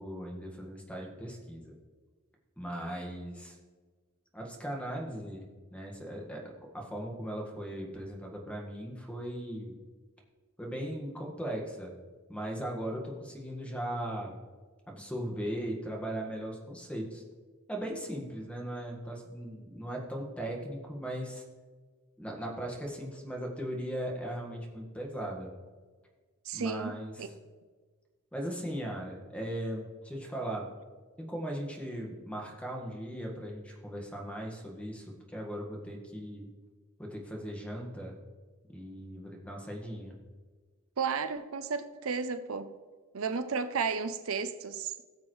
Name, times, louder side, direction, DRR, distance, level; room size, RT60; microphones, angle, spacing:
voice 1, 0.0-1.7 2.6-3.6 4.3-6.4 6.7-9.8 10.6-11.9 12.3-14.4 14.9-17.2 17.7-21.4 22.2-25.5 26.5-27.3 28.3-30.7 31.2-36.5 37.0-38.2 38.7-40.2, right 1 dB, 5° left, 0 dB, 1.6 m, -38 dB
voice 2, 26.5-27.3 41.0-42.7 43.1-44.9, right 5 dB, 70° right, 10 dB, 0.6 m, -33 dB
18.0 x 7.1 x 3.2 m, 1.4 s
head